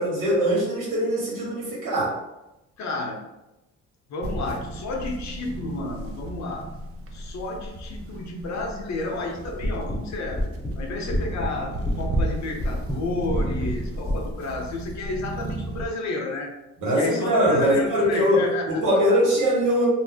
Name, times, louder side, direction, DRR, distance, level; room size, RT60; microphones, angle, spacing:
voice 1, 0.0-2.2 16.8-19.9, equal, 85° right, -4 dB, 1.1 m, -22 dB
voice 2, 2.8-3.2 4.1-6.7 7.1-10.4 10.8-16.5 17.0-18.8 19.1-19.2, left 2 dB, 65° left, 2 dB, 0.7 m, -31 dB
sound 1, 4.2-15.9, right 1 dB, 50° right, 0.5 m, -34 dB
sound 2, 9.3-14.4, equal, 15° left, 0.6 m, -30 dB
2.5 x 2.0 x 3.5 m, 0.94 s
cardioid pair, 90°, 30 cm